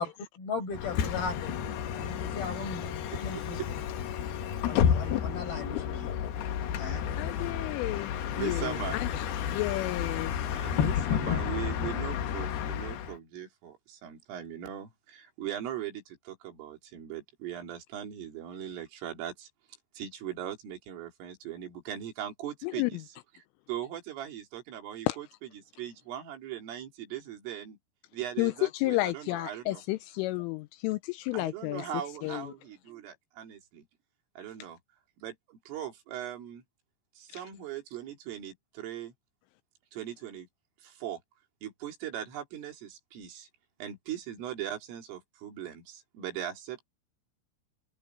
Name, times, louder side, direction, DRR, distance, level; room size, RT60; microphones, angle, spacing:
voice 1, 0.4-3.6 4.6-6.2 6.8-7.0, left 4 dB, 50° left, 9.6 m, -38 dB
Bus, 0.7-13.2, left 9 dB, 65° left, 2.9 m, -31 dB
voice 2, 3.4-3.7 7.1-7.2 8.3-9.0 10.4-19.5 20.0-23.0 23.7-25.3 25.5-27.8 28.1-29.8 31.3-33.9 34.4-34.8 35.2-36.6 37.2-39.1 39.9-40.5 40.8-41.2 41.6-43.5 43.8-46.8, right 10 dB, 75° right, 5.7 m, -39 dB
voice 3, 7.2-8.1 8.4-9.2 9.5-10.3 10.9-11.0 22.6-22.9 25.1-25.2 28.4-31.9 32.2-32.5 37.3-37.4, left 20 dB, 85° left, 3.1 m, -31 dB
omnidirectional pair, 5.8 m